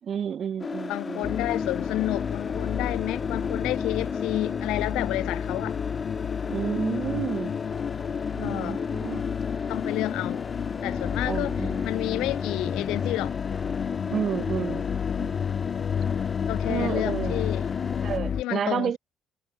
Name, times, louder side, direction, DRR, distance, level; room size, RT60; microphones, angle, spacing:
voice 1, 0.0-1.4 6.5-7.5 8.3-9.3 11.3-11.9 14.1-14.9 15.2-15.4 16.7-17.5 18.0-19.0, right 8 dB, 50° right, 3.8 m, -31 dB
sound 1, 0.6-18.2, left 4 dB, 30° left, 2.3 m, -35 dB
voice 2, 0.9-5.8 8.4-8.8 9.7-10.5 10.8-11.5 11.8-13.3 16.5-17.6 18.4-19.0, left 18 dB, 75° left, 3.4 m, -30 dB
sound 2, 1.2-18.4, left 7 dB, 50° left, 0.4 m, -31 dB
supercardioid pair, 70°, 0 cm